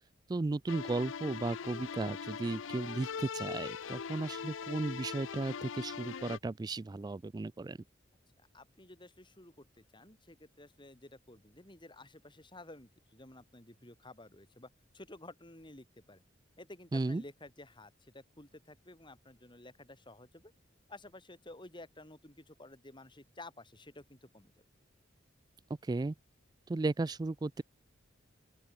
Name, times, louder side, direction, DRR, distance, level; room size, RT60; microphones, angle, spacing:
voice 1, 0.3-7.8 16.9-17.2 25.8-26.1 26.7-27.6, right 2 dB, 20° right, 0.3 m, -35 dB
sound 1, 0.7-6.4, left 6 dB, 85° left, 0.6 m, -41 dB
voice 2, 8.4-16.2 16.6-20.5 20.9-24.5, left 2 dB, 25° left, 4.0 m, -53 dB
open air
head